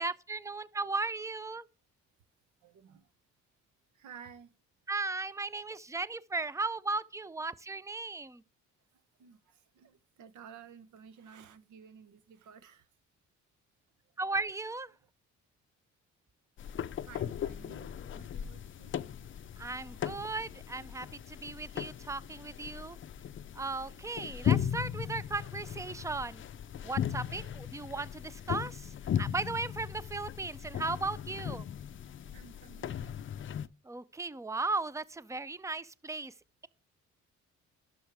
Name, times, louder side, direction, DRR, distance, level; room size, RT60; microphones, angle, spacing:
voice 1, 0.0-1.7 4.9-8.4 14.2-14.9 19.6-23.0 23.6-26.4 26.8-31.7 33.8-36.3, right 3 dB, 10° right, 0.4 m, -36 dB
voice 2, 2.6-3.1 3.9-4.5 9.2-12.9 14.2-14.3 17.1-18.9 23.6-24.1 27.1-27.5 32.3-33.2, right 7 dB, 75° right, 0.9 m, -54 dB
sound 1, 16.6-33.7, left 9 dB, 40° left, 0.5 m, -37 dB
11.5 x 6.3 x 3.4 m
cardioid pair, 90°, 30 cm